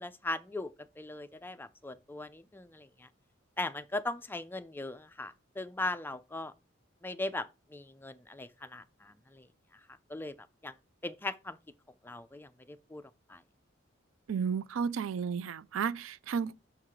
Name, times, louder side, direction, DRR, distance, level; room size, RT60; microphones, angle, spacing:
voice 1, 0.0-3.1 3.6-6.5 7.0-9.5 10.1-10.3 10.6-10.7 11.0-11.6 12.0-13.0 13.3-13.4, left 2 dB, 10° left, 0.5 m, -39 dB
voice 2, 14.3-16.5, right 6 dB, 90° right, 0.4 m, -33 dB
6.5 x 4.7 x 3.7 m
head